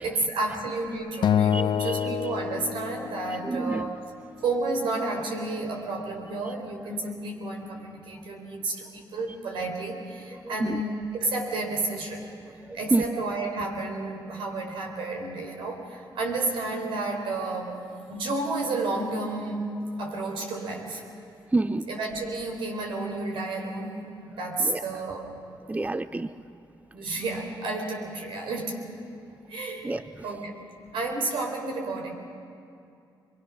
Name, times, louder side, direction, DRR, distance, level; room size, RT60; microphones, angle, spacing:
voice 1, 0.0-4.0 4.4-12.3 12.7-17.8 18.1-19.7 20.0-21.0 21.9-25.2 26.9-28.9 29.5-29.9 30.2-30.6 30.9-32.1, right 2 dB, 85° right, 2 dB, 4.1 m, -31 dB
Acoustic guitar, 1.2-3.6, left 9 dB, 65° left, 0.5 m, -26 dB
voice 2, 1.5-1.9 3.4-3.9 10.6-10.8 12.7-13.0 21.5-21.8 24.7-24.8 25.7-26.3 29.8-30.0, right 2 dB, 15° right, 13 dB, 0.6 m, -27 dB
24.5 x 23.5 x 6.2 m, 2.5 s
cardioid pair, 70°, 9 cm